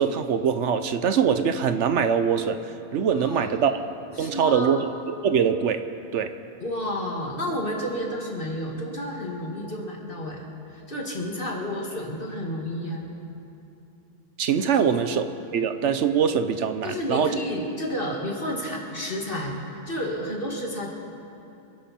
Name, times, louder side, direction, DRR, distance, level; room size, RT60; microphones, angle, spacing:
voice 1, 0.0-2.6 2.9-3.7 4.2-5.8 6.1-6.3 14.4-15.2 15.5-17.3, right 7 dB, 70° right, 9 dB, 1.0 m, -23 dB
voice 2, 3.1-3.6 4.2-4.8 6.6-13.1 14.7-15.0 16.8-20.9, equal, 45° left, -1 dB, 2.4 m, -31 dB
26.5 x 10.5 x 4.3 m, 2.8 s
omnidirectional pair, 1.3 m